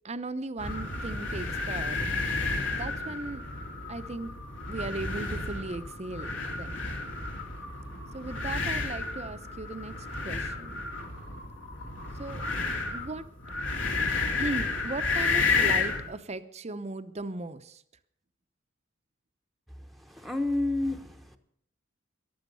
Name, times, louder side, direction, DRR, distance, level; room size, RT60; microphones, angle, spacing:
voice 1, 0.0-2.3 2.7-3.4 3.9-4.3 4.7-6.8 8.1-10.8 12.2-12.4 12.9-13.2 14.4-17.8, right 2 dB, 35° right, 11 dB, 0.8 m, -37 dB
sound 1, 0.6-16.1, left 4 dB, 65° left, 2.8 m, -31 dB
voice 2, 19.8-21.4, left 2 dB, ahead, 6 dB, 1.0 m, -31 dB
14.5 x 11.5 x 6.9 m, 0.69 s
head